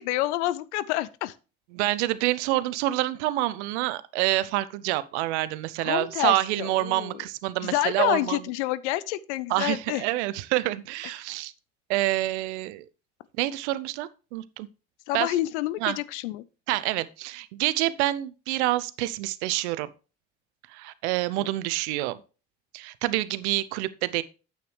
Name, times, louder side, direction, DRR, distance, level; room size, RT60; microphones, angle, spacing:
voice 1, 0.0-1.3 5.8-7.2 7.6-10.0 15.1-16.4, left 15 dB, 85° left, 0.5 m, -28 dB
voice 2, 1.7-8.4 9.5-11.5 11.9-12.9 13.4-14.7 15.1-15.3 15.8-16.0 16.7-19.9 20.7-22.2 22.7-24.2, right 16 dB, 85° right, 0.6 m, -27 dB
9.2 x 8.0 x 3.3 m
hypercardioid pair, 45°, 33 cm